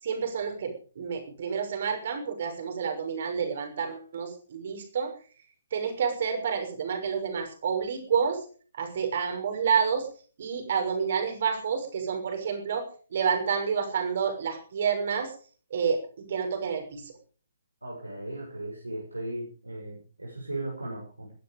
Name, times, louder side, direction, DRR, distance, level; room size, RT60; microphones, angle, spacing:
voice 1, 0.0-5.1 5.7-8.4 8.7-10.1 10.4-12.8 13.1-15.3 15.7-17.1, right 6 dB, 45° right, 5 dB, 6.2 m, -29 dB
voice 2, 17.8-21.3, right 1 dB, 85° right, -2 dB, 7.4 m, -37 dB
21.5 x 12.5 x 5.3 m, 0.42 s
figure-of-eight pair, 135°, 0 cm